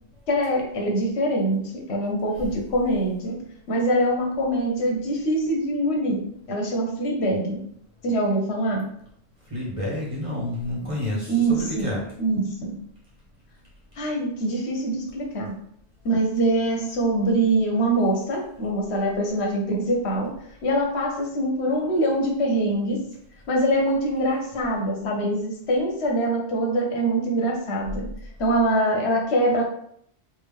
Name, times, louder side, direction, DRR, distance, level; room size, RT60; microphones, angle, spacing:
voice 1, 0.3-3.4 3.7-7.7 8.0-8.9 11.3-11.9 12.2-12.8 14.0-15.5 16.0-20.3 20.6-23.0 23.5-28.1 28.4-29.7, right 1 dB, 75° left, 0 dB, 1.1 m, -24 dB
voice 2, 9.5-12.0, left 1 dB, 30° right, -4 dB, 1.1 m, -29 dB
3.4 x 2.5 x 3.5 m, 0.67 s
omnidirectional pair, 1.1 m